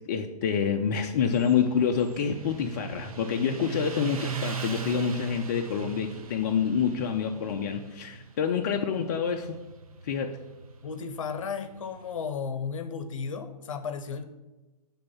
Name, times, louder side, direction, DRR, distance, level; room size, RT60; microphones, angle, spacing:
voice 1, 0.1-9.6 10.0-10.4, left 7 dB, 30° left, 3 dB, 0.3 m, -27 dB
Motorcycle, 1.0-12.2, right 6 dB, 60° right, 0.8 m, -39 dB
voice 2, 10.8-14.2, left 6 dB, 55° left, 9 dB, 0.7 m, -34 dB
7.4 x 3.5 x 5.6 m, 1.1 s
figure-of-eight pair, 115°, 20 cm